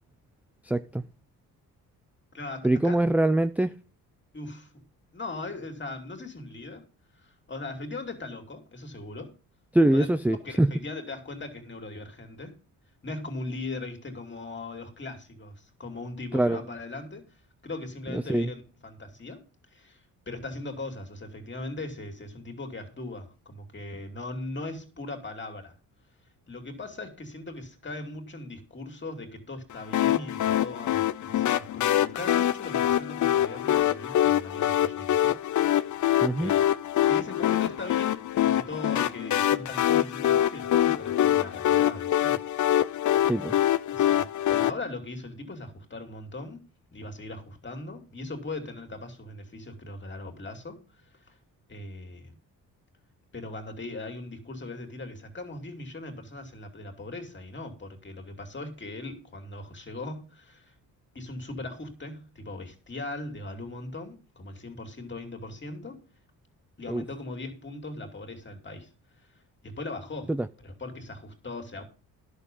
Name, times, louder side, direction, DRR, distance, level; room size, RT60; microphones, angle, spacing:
voice 1, 0.6-1.0 2.6-3.7 9.7-10.7 16.3-16.6 18.1-18.5 36.2-36.5 43.2-43.5 66.9-67.0 70.3-70.4, right 1 dB, 5° right, 0.5 m, -23 dB
voice 2, 2.3-3.0 4.3-4.8 5.1-6.8 7.1-9.3 9.9-10.1 10.4-12.5 13.0-19.4 19.7-25.7 26.5-36.1 36.4-36.7 37.1-43.0 43.9-46.6 46.9-51.4 51.7-52.3 53.3-60.7 61.1-66.0 66.8-68.9 69.2-69.4 69.6-71.8, left 2 dB, 30° left, 2.9 m, -39 dB
sound 1, 29.9-44.7, left 12 dB, 55° left, 0.6 m, -24 dB
11.0 x 6.7 x 5.4 m
cardioid pair, 95°, 36 cm